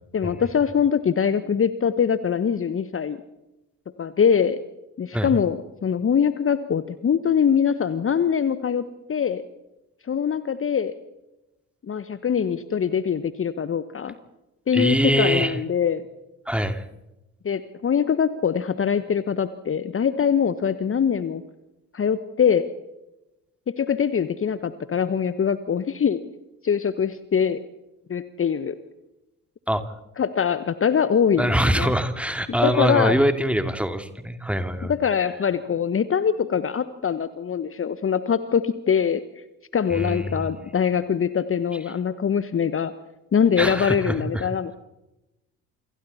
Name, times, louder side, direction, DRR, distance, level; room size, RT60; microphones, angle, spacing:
voice 1, 0.1-3.2 4.0-4.6 5.0-9.4 10.1-10.9 11.8-14.1 14.7-16.0 17.4-21.4 21.9-22.7 23.7-26.2 26.6-27.6 28.1-28.7 30.2-31.9 32.5-33.2 34.9-39.2 39.7-42.9 43.3-44.7, left 7 dB, 30° left, 13 dB, 1.3 m, -23 dB
voice 2, 14.7-15.6 16.5-16.8 29.7-29.8 31.4-34.9 39.9-40.5 43.6-44.5, equal, 5° right, 9 dB, 2.6 m, -23 dB
28.5 x 26.5 x 4.3 m, 0.96 s
figure-of-eight pair, 45°, 42 cm